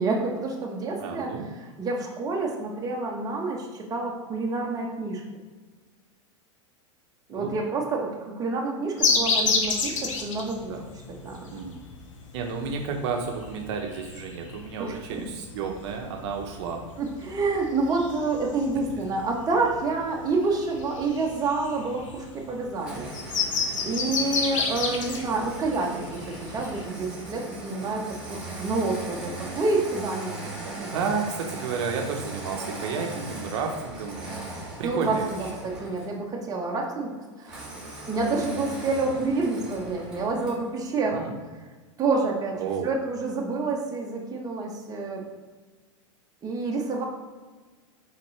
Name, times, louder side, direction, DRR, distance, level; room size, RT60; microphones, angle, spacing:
voice 1, 0.0-1.3 1.8-5.2 7.3-10.7 11.2-11.5 14.8-14.9 17.0-23.1 23.4-28.0 28.3-31.0 34.8-37.1 37.4-37.7 38.1-41.3 42.0-42.6 42.8-45.2 46.4-47.0, right 3 dB, 25° right, 0 dB, 0.9 m, -28 dB
voice 2, 1.0-1.5 7.3-7.5 10.7-10.9 11.5-11.8 12.3-16.9 30.9-34.2 34.8-35.5 41.0-41.4 42.6-42.8, right 5 dB, 65° right, 2 dB, 0.7 m, -31 dB
sound 1, 9.0-26.8, left 4 dB, 85° left, 0.8 m, -30 dB
Engine starting, 22.8-36.2 37.4-40.7, right 2 dB, 5° right, 1.5 m, -39 dB
4.2 x 4.0 x 3.2 m, 1.4 s
hypercardioid pair, 115°, 16 cm